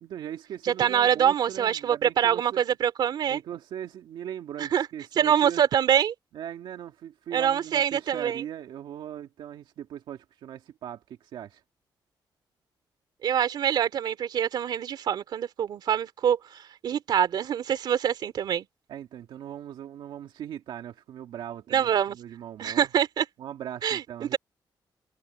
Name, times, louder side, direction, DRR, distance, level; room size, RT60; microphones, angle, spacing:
voice 1, 0.0-2.6 3.3-5.6 6.3-11.6 18.9-22.9 23.4-24.4, right 10 dB, 85° right, 2.1 m, -39 dB
voice 2, 0.6-3.4 4.6-4.9 5.2-6.1 7.3-8.4 13.2-18.7 21.7-22.2 22.6-23.2 23.8-24.4, right 9 dB, 60° right, 2.7 m, -25 dB
cardioid pair, 155°, 8 cm